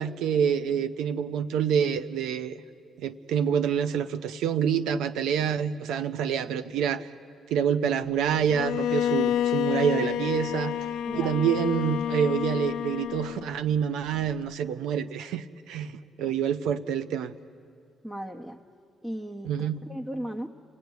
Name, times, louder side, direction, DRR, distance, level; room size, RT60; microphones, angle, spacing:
voice 1, 0.0-2.6 3.0-7.1 7.5-17.3 19.5-19.8, right 8 dB, 90° right, 10 dB, 0.7 m, -27 dB
Bowed string instrument, 8.5-13.5, left 10 dB, 85° left, 0.7 m, -29 dB
voice 2, 18.0-18.6 19.0-20.5, right 1 dB, 5° right, 1 dB, 1.1 m, -36 dB
29.0 x 17.5 x 9.4 m, 2.3 s
cardioid pair, 90°, 0 cm